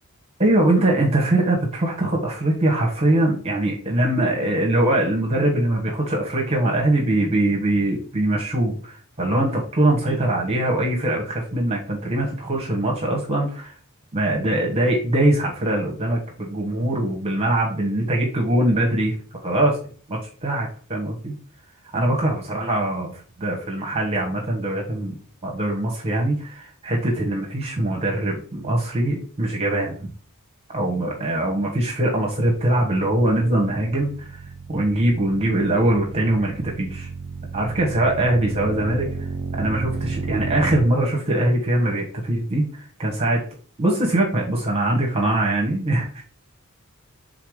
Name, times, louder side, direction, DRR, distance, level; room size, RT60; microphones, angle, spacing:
voice 1, 0.4-13.7 14.1-19.1 19.4-19.8 20.1-21.3 21.9-23.1 23.4-25.2 25.4-30.1 30.7-34.3 34.7-37.1 37.5-39.1 39.6-43.4 43.8-46.2, right 1 dB, 30° right, -1 dB, 1.4 m, -22 dB
sound 1, 32.3-40.9, right 4 dB, 60° right, 0.7 m, -33 dB
5.7 x 4.0 x 5.0 m, 0.43 s
head